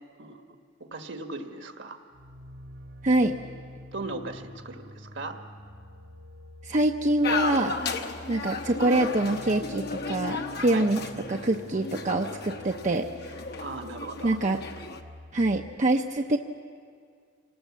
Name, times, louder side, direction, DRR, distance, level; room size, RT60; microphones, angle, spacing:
voice 1, 0.9-2.0 3.2-3.4 3.9-5.4 10.7-10.9 13.6-14.4, right 2 dB, 65° right, 5 dB, 1.6 m, -38 dB
sound 1, 2.1-15.8, left 1 dB, 80° right, 2.4 m, -47 dB
voice 2, 6.6-7.7 8.3-11.0 11.3-13.1 14.2-14.6 15.3-16.4, right 2 dB, 40° right, 3 dB, 0.7 m, -25 dB
sound 2, 7.2-15.0, left 4 dB, 55° left, 1.2 m, -34 dB
26.5 x 19.0 x 7.5 m, 2.1 s
head